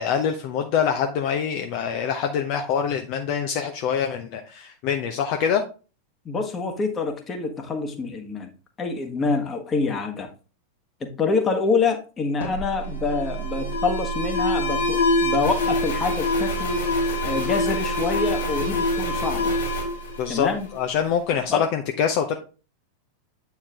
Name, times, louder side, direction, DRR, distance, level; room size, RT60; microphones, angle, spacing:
voice 1, 0.0-5.6 20.2-22.4, left 7 dB, 45° left, 5 dB, 0.7 m, -25 dB
voice 2, 6.2-8.5 8.8-10.3 11.0-16.8 17.2-19.6 20.3-20.7 21.5-21.6, left 4 dB, 20° left, 5 dB, 1.3 m, -26 dB
Alarm, 12.4-21.0, left 1 dB, 65° left, 2.9 m, -25 dB
8.7 x 4.6 x 3.5 m, 0.34 s
figure-of-eight pair, 90°, 0 cm